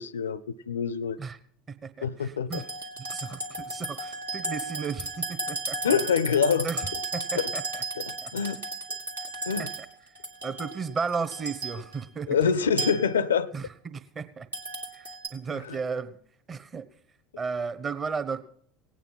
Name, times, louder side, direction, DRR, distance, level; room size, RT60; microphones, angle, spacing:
voice 1, 0.0-1.2 2.0-2.6 5.8-6.7 7.4-7.5 8.1-8.6 9.5-9.7 12.3-13.5 15.7-15.8, left 6 dB, 75° left, 20 dB, 0.5 m, -26 dB
voice 2, 1.7-2.7 3.0-5.8 6.6-7.8 8.2-8.3 9.6-9.7 10.4-12.7 13.5-14.5 14.9-16.2 16.5-16.9 17.4-18.4, right 5 dB, 30° right, 13 dB, 1.1 m, -34 dB
sound 1, 2.5-12.0 12.8-13.3 14.5-15.3, right 2 dB, 80° right, 1.9 m, -35 dB
18.0 x 8.9 x 5.7 m, 0.63 s
figure-of-eight pair, 70°, 0 cm